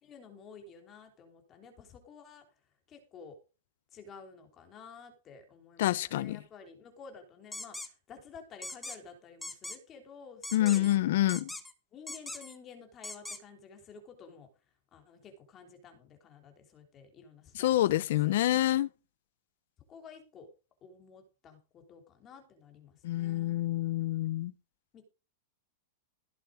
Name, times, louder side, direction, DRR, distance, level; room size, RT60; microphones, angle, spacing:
voice 1, 0.0-2.5 2.9-3.4 3.9-10.9 11.9-14.5 14.9-17.6 17.9-18.6 19.9-20.5 20.8-23.6 24.9-25.0, left 5 dB, 20° left, 3.4 m, -52 dB
voice 2, 5.8-6.4 10.5-11.5 17.5-18.9 23.0-24.5, left 14 dB, 60° left, 0.7 m, -27 dB
sound 1, 7.5-7.9 8.6-9.0 9.4-9.8 10.4-11.0 11.3-11.7 12.1-12.6 13.0-13.4, left 2 dB, 5° left, 1.1 m, -41 dB
16.0 x 7.6 x 5.0 m
supercardioid pair, 170°, 0 cm